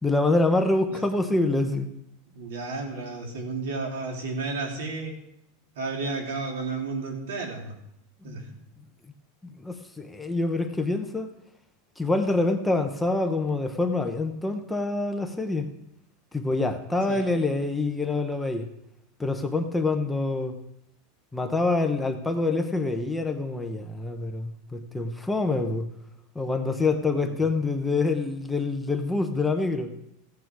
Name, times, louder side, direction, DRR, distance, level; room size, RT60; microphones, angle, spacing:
voice 1, 0.0-1.9 8.2-8.5 9.4-11.3 12.0-15.7 16.3-18.7 19.2-20.6 21.3-25.9 26.3-29.9, left 2 dB, 5° left, 4 dB, 0.7 m, -26 dB
voice 2, 2.3-5.1 5.7-7.7 8.2-8.4 17.1-17.2 27.2-27.3, right 3 dB, 90° right, 1 dB, 3.2 m, -32 dB
15.0 x 8.7 x 4.6 m, 0.79 s
supercardioid pair, 170°, 0 cm